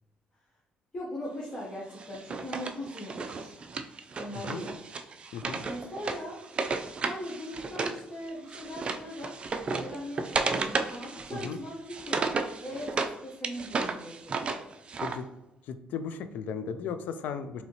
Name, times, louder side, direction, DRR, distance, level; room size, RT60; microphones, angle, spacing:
voice 1, 0.9-3.6 4.2-4.7 5.6-6.4 7.0-14.5 17.6-17.7, equal, 35° left, -5 dB, 0.9 m, -40 dB
Wood, 2.0-8.0 8.3-13.1 13.4-15.2, right 4 dB, 35° right, 0.4 m, -33 dB
voice 2, 15.6-17.6, left 6 dB, 75° left, 10 dB, 0.4 m, -36 dB
4.1 x 2.8 x 2.9 m, 0.93 s
cardioid pair, 90°, 3 cm